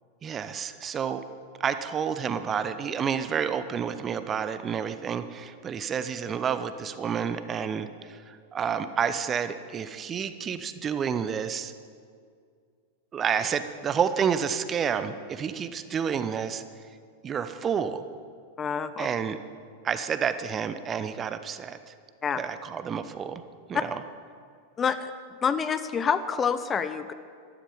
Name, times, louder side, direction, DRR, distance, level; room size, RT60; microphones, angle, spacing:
voice 1, 0.2-1.2 1.6-11.7 13.1-16.6 17.2-18.0 19.0-19.4 19.8-21.9 22.4-23.4 23.7-24.0, right 7 dB, 25° right, 11 dB, 0.8 m, -29 dB
voice 2, 18.6-19.1 22.2-22.4 24.8-25.1 25.4-27.1, left 6 dB, 20° left, 12 dB, 0.7 m, -27 dB
13.0 x 13.0 x 7.1 m, 2.2 s
figure-of-eight pair, 90°, 0 cm